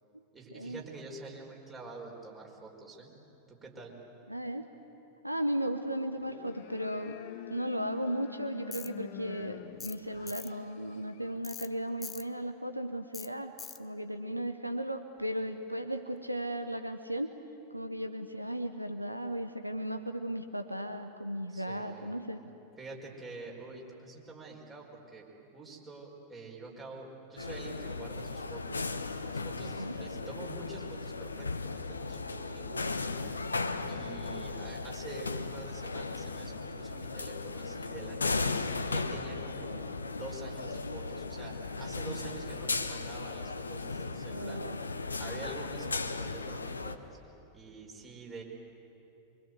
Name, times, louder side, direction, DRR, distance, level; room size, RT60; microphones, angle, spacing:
voice 1, 0.3-3.1 3.5-3.9 21.5-22.2 22.8-25.2 25.5-29.0 29.3-32.9 33.9-39.9 40.1-44.6 45.2-47.2 47.5-48.4, right 3 dB, 20° right, -1 dB, 5.0 m, -47 dB
voice 2, 4.3-4.7 5.2-7.2 7.5-17.3 17.7-22.4 29.6-30.0 39.7-40.0 44.3-44.8, right 1 dB, 90° right, 8 dB, 0.9 m, -36 dB
sound 1, 6.1-11.4, left 11 dB, 50° left, 1.1 m, -47 dB
Tools, 8.7-8.9 9.8-10.0 10.3-10.5 11.4-11.7 12.0-12.2 13.1-13.3 13.6-13.8, left 7 dB, 20° left, 0.8 m, -43 dB
sound 2, 27.4-47.0, left 3 dB, 75° left, 0.9 m, -36 dB
24.5 x 24.5 x 8.0 m, 2.9 s
figure-of-eight pair, 90°, 0 cm